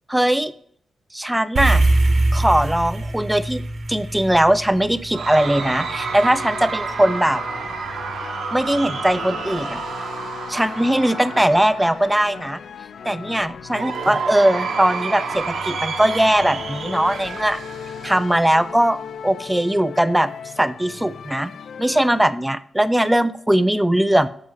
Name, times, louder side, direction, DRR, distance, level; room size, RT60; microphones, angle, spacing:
voice 1, 0.1-0.5 1.1-1.9 2.3-3.6 3.9-7.4 8.5-9.8 10.5-12.6 13.0-17.6 18.0-20.3 20.6-21.5 21.8-24.3, right 1 dB, 5° right, 14 dB, 0.4 m, -20 dB
sound 1, 1.6-6.1, right 2 dB, 50° right, 1.0 m, -21 dB
Cheering / Crowd, 5.1-12.4 13.7-18.4, right 5 dB, 80° right, 1.0 m, -30 dB
sound 2, 5.4-22.3, left 7 dB, 75° left, 0.3 m, -37 dB
11.0 x 6.8 x 3.2 m, 0.66 s
wide cardioid pair, 155°, 0 cm